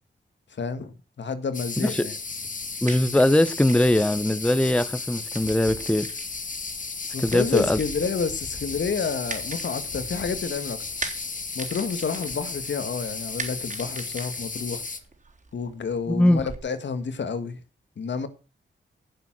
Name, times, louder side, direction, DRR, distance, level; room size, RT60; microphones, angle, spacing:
voice 1, 0.6-2.1 7.1-10.8 11.6-14.8 15.5-17.6 18.0-18.3, left 5 dB, 75° left, 1.8 m, -29 dB
sound 1, 1.5-15.0, left 4 dB, 45° left, 2.2 m, -34 dB
voice 2, 1.8-2.1 2.8-6.1 7.2-7.8 16.1-16.4, left 1 dB, 5° left, 1.0 m, -21 dB
sound 2, 2.5-16.6, right 3 dB, 40° right, 3.8 m, -42 dB
16.5 x 7.0 x 6.2 m
wide cardioid pair, 85°, 19 cm